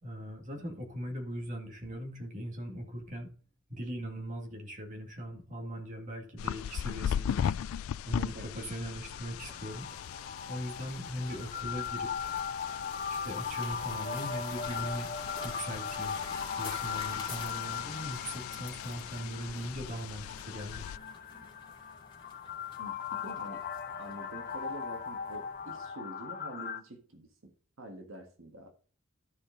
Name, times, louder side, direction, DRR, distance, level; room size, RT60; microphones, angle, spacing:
voice 1, 0.0-3.3 3.7-7.5 8.0-9.9 10.5-12.3 13.1-15.1 15.4-16.2 16.6-20.9, equal, 40° right, 2.1 m, -40 dB
sound 1, 6.4-21.0, left 9 dB, 90° left, 0.3 m, -39 dB
voice 2, 8.3-8.7 21.3-21.5 22.8-23.7 24.0-27.5 27.8-28.7, right 1 dB, 75° right, 1.7 m, -47 dB
sound 2, 8.4-26.8, left 6 dB, 45° left, 0.8 m, -39 dB
sound 3, 9.4-25.9, left 4 dB, 25° left, 2.5 m, -50 dB
13.5 x 5.1 x 3.8 m
head